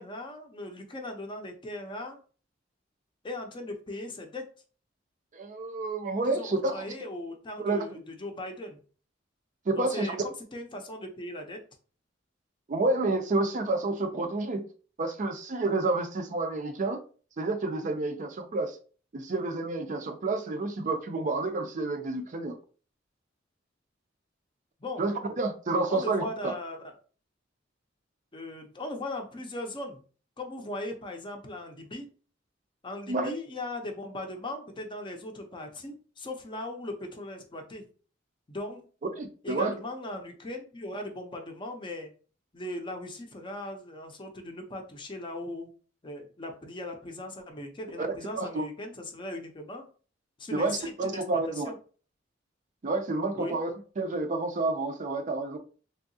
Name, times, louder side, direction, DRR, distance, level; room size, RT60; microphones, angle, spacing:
voice 1, 0.0-2.2 3.2-4.5 6.3-8.8 9.7-11.6 24.8-25.1 25.9-27.0 28.3-30.0 30.4-32.1 32.8-37.9 38.5-38.9 39.4-42.1 42.5-45.7 46.0-49.9 50.4-51.8 53.3-53.6, left 1 dB, 25° left, 0.6 m, -38 dB
voice 2, 5.3-6.8 7.6-8.0 9.7-10.2 12.7-14.7 15.0-17.0 17.4-18.8 19.1-22.6 25.0-26.5 33.1-33.3 39.0-39.7 48.0-48.1 48.4-48.6 50.5-51.7 52.8-55.6, right 2 dB, 40° right, 0.5 m, -29 dB
3.5 x 2.7 x 2.6 m
head